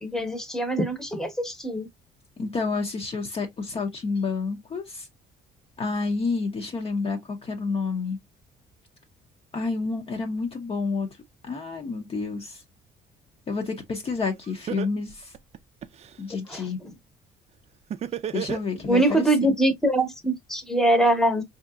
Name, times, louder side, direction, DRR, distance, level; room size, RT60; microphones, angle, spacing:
voice 1, 0.0-1.9 16.5-16.6 18.9-21.4, right 1 dB, 5° left, 0.9 m, -23 dB
voice 2, 2.4-5.1 5.8-8.2 9.5-11.1 11.4-12.6 13.5-15.3 16.2-16.8 18.3-19.5, left 4 dB, 35° left, 0.7 m, -29 dB
Laughter, 14.1-14.2 14.7-16.1 17.9-19.1, right 8 dB, 40° right, 0.4 m, -31 dB
4.3 x 2.8 x 2.4 m
cardioid pair, 110°, 17 cm